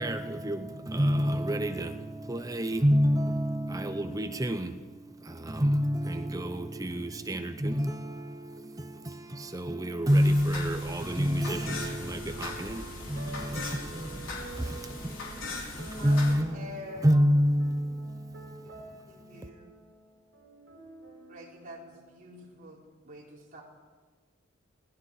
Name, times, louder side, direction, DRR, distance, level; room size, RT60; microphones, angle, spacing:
voice 1, 0.0-18.7, equal, 15° right, 0.8 m, -28 dB
sound 1, 10.1-16.4, left 2 dB, 70° left, 4.7 m, -40 dB
voice 2, 10.7-17.1 17.6-22.7, right 1 dB, 55° right, 7.6 m, -48 dB
voice 3, 15.9-17.1 19.1-19.8 21.3-22.8 23.0-23.6, left 1 dB, 40° right, 4.5 m, -45 dB
28.5 x 18.5 x 4.9 m
head